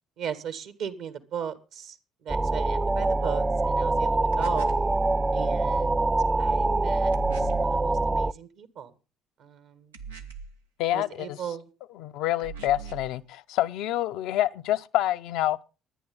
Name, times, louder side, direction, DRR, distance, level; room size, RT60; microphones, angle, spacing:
voice 1, 0.2-4.7 5.3-6.1 6.4-8.9 9.4-9.9 10.9-11.7, right 8 dB, 60° right, 1.9 m, -37 dB
sound 1, 2.3-8.3, right 2 dB, 20° right, 0.6 m, -24 dB
sound 2, 4.3-4.9 7.1-7.7 9.9-10.6 12.4-13.1, right 5 dB, 85° right, 1.2 m, -41 dB
voice 2, 10.8-11.4 11.9-15.6, left 13 dB, 65° left, 0.7 m, -27 dB
21.5 x 10.0 x 3.9 m
figure-of-eight pair, 50°, 0 cm